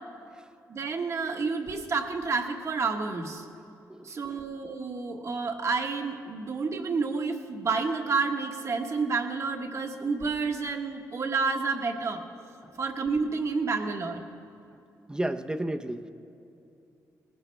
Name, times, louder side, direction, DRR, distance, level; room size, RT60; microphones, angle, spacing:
voice 1, 0.7-3.5 4.0-12.2 12.8-14.2, right 4 dB, 50° right, 4 dB, 1.3 m, -29 dB
voice 2, 15.1-16.1, right 1 dB, 10° right, 7 dB, 0.7 m, -32 dB
19.5 x 15.5 x 3.3 m, 2.6 s
cardioid pair, 90°, 6 cm